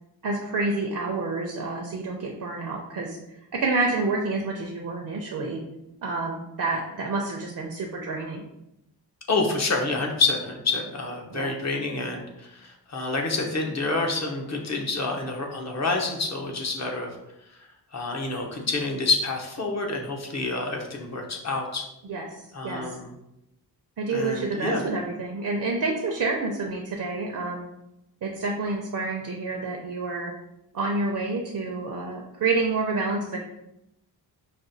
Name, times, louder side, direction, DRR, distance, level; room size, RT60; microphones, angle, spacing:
voice 1, 0.2-5.6 6.0-8.4 11.3-11.5 22.1-22.3 22.6-23.0 24.0-27.6 28.2-30.4 30.7-33.4, right 3 dB, 55° right, 1 dB, 0.5 m, -28 dB
voice 2, 9.3-17.1 17.9-21.8 22.5-23.1 24.1-24.8, left 3 dB, 45° left, 1 dB, 0.7 m, -28 dB
5.8 x 2.2 x 2.6 m, 0.86 s
wide cardioid pair, 125°, 38 cm